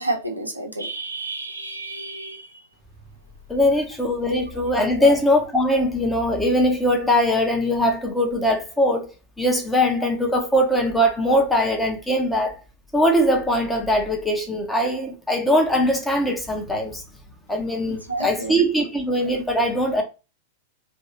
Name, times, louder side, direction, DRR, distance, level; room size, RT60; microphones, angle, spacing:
voice 1, 0.0-2.5 4.3-4.4 5.0-5.1 18.1-18.6, right 2 dB, 85° right, 0.8 m, -30 dB
voice 2, 3.5-9.1 9.4-12.6 12.9-17.0 17.5-20.0, equal, 5° left, 0.8 m, -21 dB
2.8 x 2.5 x 2.8 m
figure-of-eight pair, 95°, 0 cm